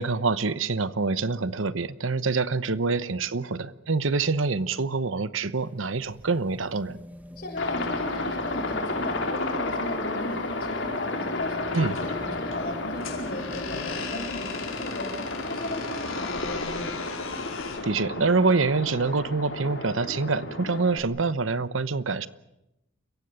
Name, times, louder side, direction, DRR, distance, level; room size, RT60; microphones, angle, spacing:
voice 1, 0.0-7.0 11.7-12.0 17.8-22.3, right 4 dB, 75° right, 15 dB, 0.9 m, -26 dB
sound 1, 5.4-16.4 17.6-17.7, equal, 10° right, 1.2 m, -44 dB
voice 2, 7.4-17.0, left 1 dB, 45° left, 2 dB, 7.1 m, -36 dB
Aircraft, 7.6-21.0, left 2 dB, 65° left, 3.5 m, -32 dB
sound 2, 11.7-17.9, left 5 dB, 85° left, 5.1 m, -38 dB
29.5 x 16.5 x 8.8 m, 0.88 s
head